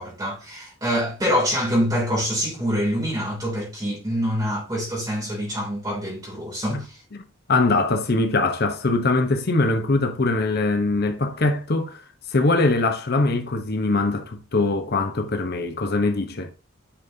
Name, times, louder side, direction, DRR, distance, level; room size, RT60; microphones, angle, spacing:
voice 1, 0.0-7.0, equal, 20° right, 3.1 m, -25 dB
voice 2, 7.5-12.0 12.3-16.5, left 2 dB, 50° left, 0.9 m, -22 dB
10.0 x 5.3 x 2.7 m
head